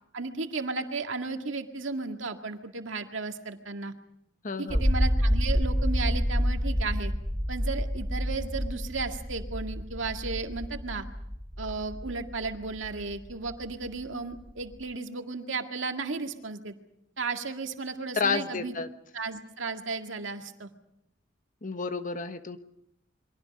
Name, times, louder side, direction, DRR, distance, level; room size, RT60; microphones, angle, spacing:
voice 1, 0.1-3.9 4.6-7.1 7.5-11.0 11.6-16.7 17.2-18.7 19.1-20.7, right 4 dB, 80° right, 5 dB, 2.0 m, -34 dB
voice 2, 4.4-4.8 18.1-18.9 21.6-22.6, left 4 dB, 45° left, 9 dB, 1.3 m, -30 dB
sound 1, 4.7-14.8, equal, 15° right, 6.5 m, -29 dB
28.5 x 23.5 x 5.4 m, 0.77 s
head